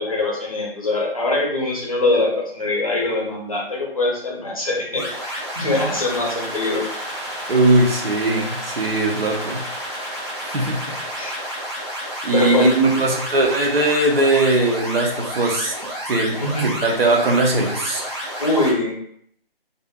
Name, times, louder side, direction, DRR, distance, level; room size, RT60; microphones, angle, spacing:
voice 1, 0.0-6.8 11.2-11.4 12.3-13.0 16.4-16.7 18.4-18.9, left 1 dB, 35° left, -3 dB, 0.6 m, -22 dB
sound 1, 5.0-18.7, equal, 25° right, 0.6 m, -30 dB
voice 2, 7.5-9.6 10.4-11.2 12.2-15.7 16.1-18.1, right 2 dB, 70° right, 1 dB, 0.7 m, -20 dB
2.5 x 2.4 x 2.2 m, 0.67 s
figure-of-eight pair, 175°, 30 cm